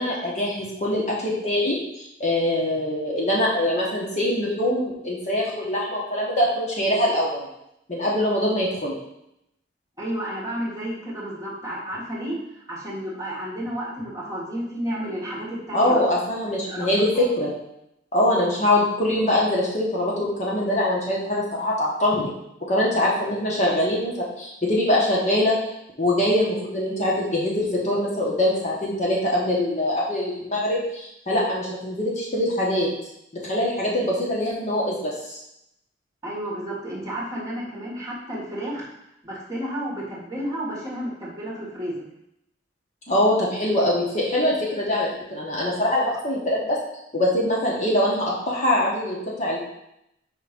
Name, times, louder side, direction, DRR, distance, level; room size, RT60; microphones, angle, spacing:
voice 1, 0.0-7.5 7.9-8.9 15.7-17.5 18.1-22.3 22.7-25.6 26.0-32.9 33.5-35.4 43.1-46.8 47.1-49.6, left 1 dB, 40° left, -4 dB, 1.2 m, -23 dB
voice 2, 10.0-12.4 12.7-16.0 16.4-16.9 17.1-17.2 36.2-38.9 39.2-42.0, right 1 dB, 20° right, -6 dB, 1.6 m, -31 dB
4.9 x 3.7 x 5.2 m, 0.81 s
head